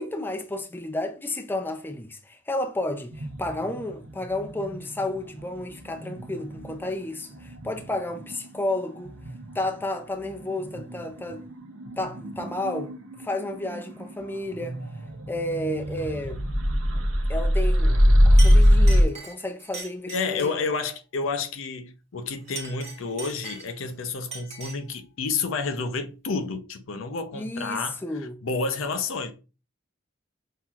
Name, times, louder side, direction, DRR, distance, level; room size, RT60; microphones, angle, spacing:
voice 1, 0.0-9.1 9.5-11.4 12.0-14.8 15.3-16.4 17.3-20.5 27.3-28.4, left 1 dB, 10° left, 0.4 m, -32 dB
sound 1, 3.1-9.8 10.2-19.0, equal, 80° right, 0.8 m, -24 dB
Chink clink, 17.9-18.1 18.4-20.6 22.4-23.9 24.3-24.9, right 4 dB, 35° right, 1.1 m, -40 dB
voice 2, 20.1-28.0 28.4-29.3, left 4 dB, 70° left, 0.6 m, -30 dB
5.7 x 2.7 x 2.3 m
head